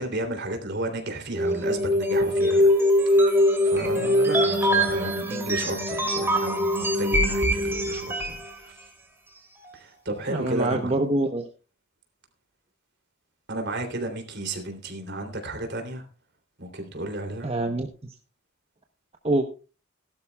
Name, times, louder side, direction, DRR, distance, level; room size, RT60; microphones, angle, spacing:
voice 1, 0.0-2.7 3.1-8.7 9.7-10.9 13.5-16.0 16.6-17.5, right 1 dB, 55° right, 4 dB, 3.1 m, -33 dB
sound 1, 1.3-8.5, equal, 10° right, 2.2 m, -22 dB
voice 2, 10.3-11.5 17.4-18.1 19.2-19.5, right 2 dB, 30° right, 4 dB, 0.9 m, -25 dB
18.5 x 12.0 x 2.3 m, 0.33 s
head